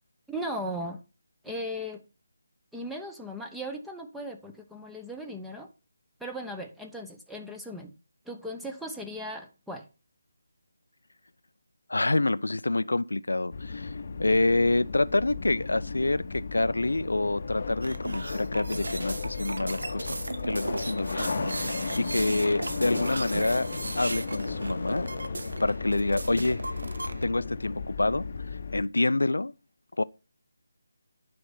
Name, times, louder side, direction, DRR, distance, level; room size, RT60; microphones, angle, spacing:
voice 1, 0.3-1.0 1.4-2.0 2.7-5.7 6.2-7.9 8.3-9.9, equal, ahead, 0.8 m, -37 dB
voice 2, 11.9-13.9 14.2-20.2 20.5-23.7 24.0-25.1 25.6-26.6 27.2-28.3 28.7-29.5 30.0-30.1, left 2 dB, 65° left, 0.5 m, -27 dB
sound 1, 13.5-28.8, left 4 dB, 45° left, 0.8 m, -35 dB
sound 2, 17.8-27.2, right 2 dB, 65° right, 1.2 m, -36 dB
9.9 x 5.3 x 5.6 m
figure-of-eight pair, 155°, 0 cm